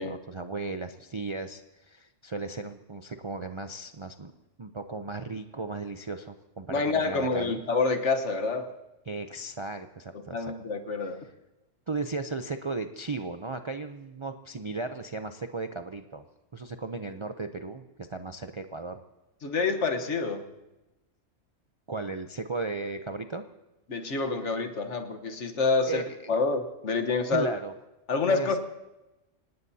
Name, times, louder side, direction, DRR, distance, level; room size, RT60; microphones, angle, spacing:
voice 1, 0.0-4.3 4.6-7.6 9.1-10.5 11.0-11.1 11.9-16.2 16.5-19.0 21.9-23.4 25.9-26.3 27.3-27.7 28.3-28.6, right 3 dB, 40° right, 6 dB, 0.4 m, -36 dB
voice 2, 6.7-8.7 10.3-11.2 19.4-20.4 23.9-26.0 26.3-27.5 28.1-28.6, left 4 dB, 65° left, 6 dB, 1.5 m, -27 dB
26.5 x 18.5 x 2.8 m, 1.0 s
omnidirectional pair, 1.3 m